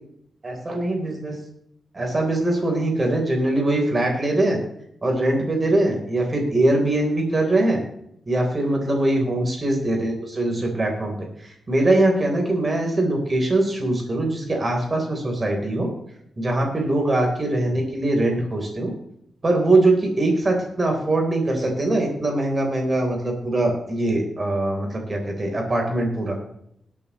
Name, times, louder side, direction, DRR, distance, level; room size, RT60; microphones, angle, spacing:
voice 1, 0.4-1.4 1.9-4.6 5.0-7.8 8.3-11.2 11.4-15.9 16.4-18.9 19.4-26.4, right 2 dB, 25° right, 1 dB, 3.8 m, -22 dB
21.0 x 8.6 x 3.1 m, 0.75 s
wide cardioid pair, 145°, 0 cm